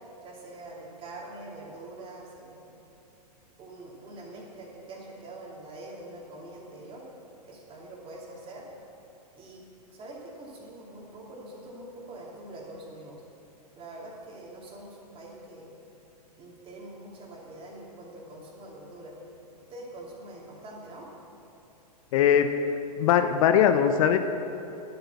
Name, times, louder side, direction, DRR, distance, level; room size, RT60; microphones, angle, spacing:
voice 1, 0.2-2.8 3.6-7.1 7.4-8.7 9.4-9.6 9.9-13.2 13.8-15.7 16.4-19.2 19.7-21.1, right 2 dB, 25° right, -3 dB, 2.9 m, -44 dB
voice 2, 22.1-24.2, left 8 dB, 55° left, 8 dB, 0.7 m, -21 dB
11.0 x 7.9 x 7.0 m, 2.8 s
hypercardioid pair, 115°, 21 cm